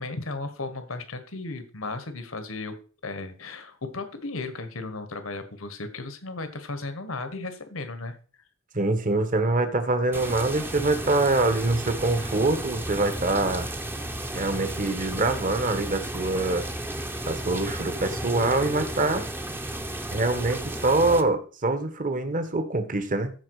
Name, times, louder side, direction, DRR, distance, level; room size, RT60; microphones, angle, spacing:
voice 1, 0.0-2.8 3.0-8.2, left 3 dB, 80° left, 9 dB, 1.6 m, -35 dB
voice 2, 8.7-13.7 14.3-16.6 17.3-19.3 20.1-23.3, right 2 dB, 40° right, 8 dB, 1.3 m, -24 dB
sound 1, 10.1-21.2, right 1 dB, 10° right, 0.8 m, -33 dB
14.5 x 4.9 x 4.9 m, 0.40 s
head